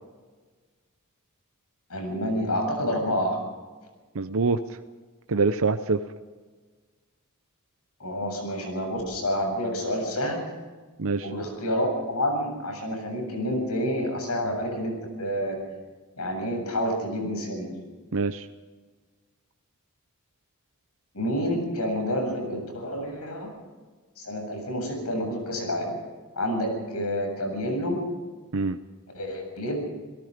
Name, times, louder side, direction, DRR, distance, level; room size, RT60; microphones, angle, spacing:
voice 1, 1.9-3.4 8.0-10.4 11.2-15.6 16.2-17.7 21.1-23.5 24.2-26.0 26.4-28.0 29.1-29.8, equal, 80° left, 3 dB, 7.5 m, -28 dB
voice 2, 4.1-4.6 5.3-6.0 11.0-11.3 18.1-18.4 28.5-28.8, right 4 dB, 65° right, 9 dB, 0.8 m, -24 dB
29.0 x 18.0 x 5.2 m, 1.4 s
head